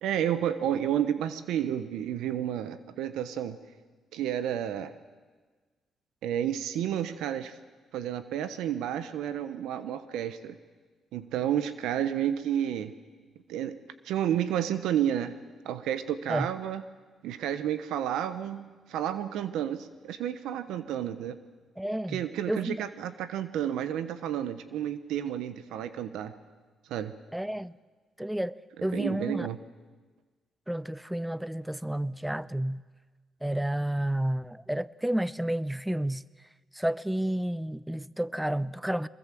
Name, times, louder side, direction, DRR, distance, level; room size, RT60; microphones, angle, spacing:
voice 1, 0.0-3.6 4.1-4.9 6.2-7.5 7.9-10.6 11.1-12.9 13.5-15.3 15.6-16.8 17.2-21.4 22.1-26.3 26.9-27.1 28.9-29.6, right 10 dB, 85° right, 1.1 m, -31 dB
voice 2, 21.8-22.8 27.3-27.7 28.2-29.5 30.7-32.8 33.4-36.2 36.7-39.1, right 1 dB, 5° right, 0.6 m, -31 dB
23.5 x 21.5 x 7.7 m
cardioid pair, 90°, 0 cm